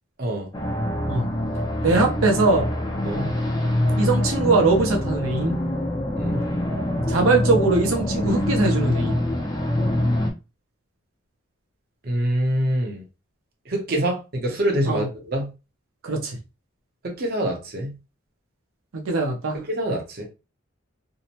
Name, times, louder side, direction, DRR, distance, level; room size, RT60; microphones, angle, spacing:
sound 1, 0.5-10.3, left 1 dB, 20° left, 0.4 m, -24 dB
voice 1, 1.8-2.7 4.0-5.6 7.1-9.1 14.9-15.1 16.0-16.4 18.9-19.6, right 3 dB, 90° right, 0.7 m, -21 dB
voice 2, 12.0-13.0 13.7-15.5 17.0-17.9 19.7-20.3, right 1 dB, 50° right, 0.7 m, -25 dB
2.7 x 2.0 x 2.8 m
head